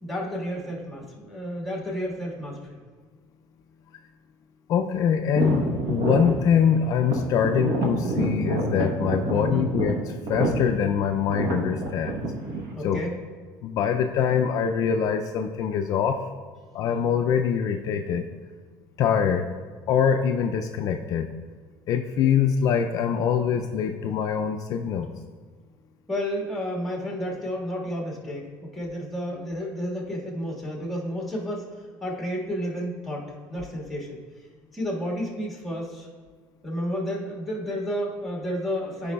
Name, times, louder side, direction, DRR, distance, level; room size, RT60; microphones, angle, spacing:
voice 1, 0.0-2.8 9.3-9.7 12.7-13.2 26.1-34.2 34.7-36.1 36.6-39.1, equal, ahead, -3 dB, 1.6 m, -31 dB
voice 2, 4.7-12.2 12.8-13.0 13.6-16.2 16.7-18.2 19.0-19.5 19.9-21.3 21.9-25.1 39.0-39.1, left 7 dB, 50° left, 5 dB, 0.4 m, -24 dB
sound 1, 5.3-12.7, right 2 dB, 65° right, 1.1 m, -28 dB
12.0 x 5.3 x 2.3 m, 1.6 s
cardioid pair, 135°, 7 cm